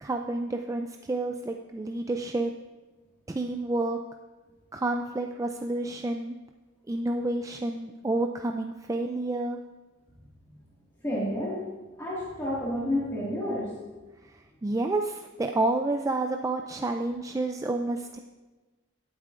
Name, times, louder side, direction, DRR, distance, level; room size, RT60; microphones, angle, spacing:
voice 1, 0.0-2.5 3.3-4.0 4.7-6.4 6.9-9.6 14.6-18.2, right 2 dB, 15° right, 3 dB, 0.3 m, -29 dB
voice 2, 11.0-11.7 12.0-13.8, left 1 dB, 15° left, -7 dB, 1.9 m, -30 dB
17.5 x 8.2 x 2.5 m, 1.2 s
head